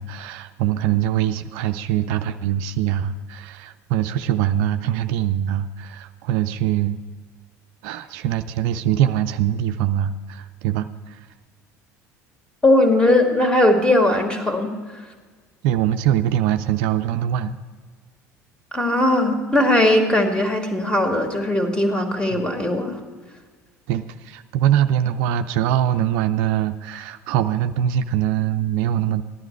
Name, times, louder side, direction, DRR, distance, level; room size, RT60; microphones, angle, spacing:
voice 1, 0.0-7.0 7.8-11.2 15.6-17.6 22.3-22.4 23.9-29.2, right 11 dB, 60° right, 9 dB, 0.5 m, -23 dB
voice 2, 12.6-14.7 18.7-23.0, left 1 dB, 10° left, 4 dB, 2.2 m, -19 dB
14.5 x 11.5 x 4.6 m, 1.5 s
figure-of-eight pair, 65°, 9 cm